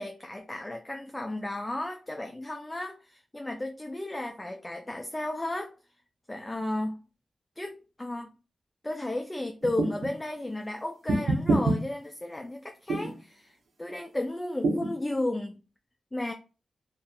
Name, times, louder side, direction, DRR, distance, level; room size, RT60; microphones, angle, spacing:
voice 1, 0.0-5.7 6.3-7.0 7.6-8.3 8.8-13.5 13.8-15.6 16.1-16.3, left 1 dB, 20° left, 0.4 m, -34 dB
sound 1, 9.6-10.1 11.1-11.8 12.9-13.2 14.6-14.9, right 2 dB, 80° right, 0.8 m, -25 dB
2.6 x 2.5 x 2.4 m
cardioid pair, 45°, 0 cm